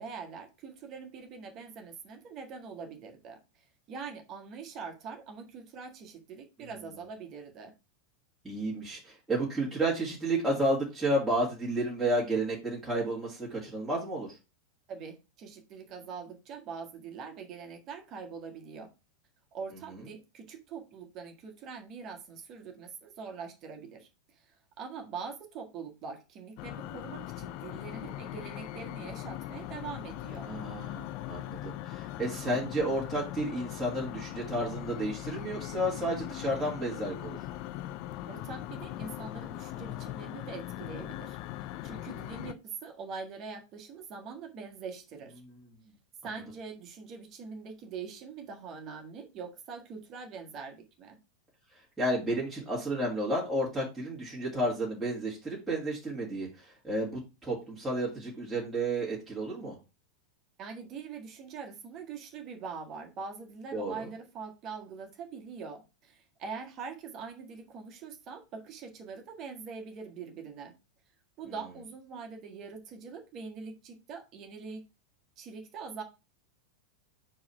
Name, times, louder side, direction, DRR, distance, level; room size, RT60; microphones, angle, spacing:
voice 1, 0.0-3.4 3.9-7.7 14.9-18.9 19.5-24.1 24.3-30.5 38.3-41.4 41.8-45.4 46.2-51.2 60.6-70.7 71.4-74.9 75.4-76.0, right 5 dB, 35° right, 4 dB, 1.6 m, -43 dB
voice 2, 8.4-14.4 19.9-20.0 30.4-37.4 52.0-59.8 63.7-64.1, right 1 dB, 5° right, -7 dB, 2.3 m, -31 dB
sound 1, 26.6-42.5, left 14 dB, 45° left, 0.4 m, -40 dB
4.7 x 4.4 x 5.5 m, 0.28 s
figure-of-eight pair, 90°, 0 cm